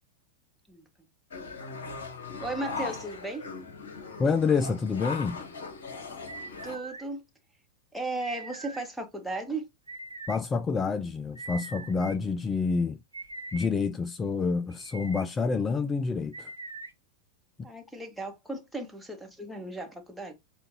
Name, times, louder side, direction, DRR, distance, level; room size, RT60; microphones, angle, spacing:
sound 1, 1.3-6.8, left 4 dB, 60° left, 1.1 m, -39 dB
voice 1, 2.4-3.5 6.6-7.2 7.9-9.6 17.6-20.4, right 2 dB, ahead, 1.2 m, -35 dB
voice 2, 4.2-5.4 10.3-13.0 13.5-16.5 17.6-17.7, left 4 dB, 20° left, 0.3 m, -28 dB
sound 2, 6.3-7.0 8.2-8.8 9.9-10.4 11.3-12.2 13.1-13.7 14.7-15.2 16.3-16.9, right 3 dB, 85° right, 0.7 m, -42 dB
6.8 x 2.5 x 2.8 m
figure-of-eight pair, 90°, 0 cm